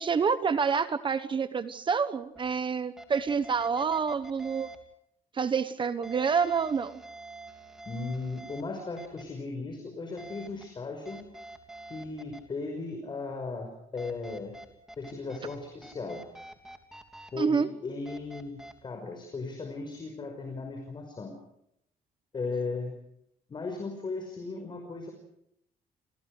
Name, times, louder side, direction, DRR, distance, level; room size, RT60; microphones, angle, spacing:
voice 1, 0.0-4.7 5.3-7.0 17.4-17.7, right 6 dB, 30° right, 12 dB, 1.1 m, -28 dB
sound 1, 2.3-2.4 3.0-4.8 6.0-8.6 9.0-9.2 10.2-10.6 11.0-12.4 14.0-15.6 15.8-17.3 18.0-18.7, right 2 dB, 5° right, 3.3 m, -46 dB
voice 2, 7.9-11.2 11.9-14.5 15.0-16.2 17.3-21.3 22.3-22.9 23.5-25.1, left 3 dB, 30° left, 3 dB, 5.5 m, -36 dB
29.5 x 27.5 x 5.0 m, 0.75 s
cardioid pair, 160°, 16 cm